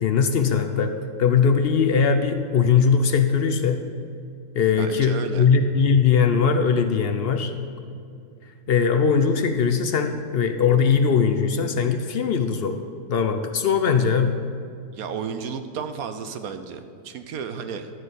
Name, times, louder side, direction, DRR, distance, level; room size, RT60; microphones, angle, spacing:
voice 1, 0.0-0.9 1.2-3.8 4.6-7.5 8.7-12.8 13.1-14.4, left 6 dB, 60° left, 7 dB, 0.6 m, -20 dB
voice 2, 4.8-5.5 14.9-17.9, right 6 dB, 75° right, 9 dB, 1.1 m, -33 dB
13.0 x 4.6 x 8.2 m, 2.5 s
omnidirectional pair, 1.6 m